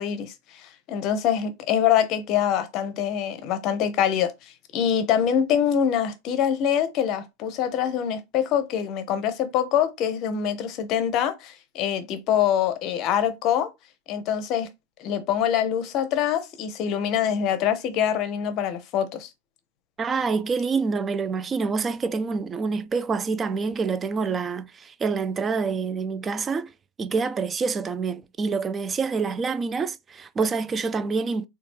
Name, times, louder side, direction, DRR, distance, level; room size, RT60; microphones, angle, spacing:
voice 1, 0.0-4.3 4.7-13.7 14.1-14.7 15.0-19.3, left 9 dB, 40° left, 0.6 m, -24 dB
voice 2, 20.0-26.7 27.0-31.5, right 4 dB, 20° right, 0.3 m, -27 dB
4.0 x 2.3 x 3.2 m
figure-of-eight pair, 90°, 0 cm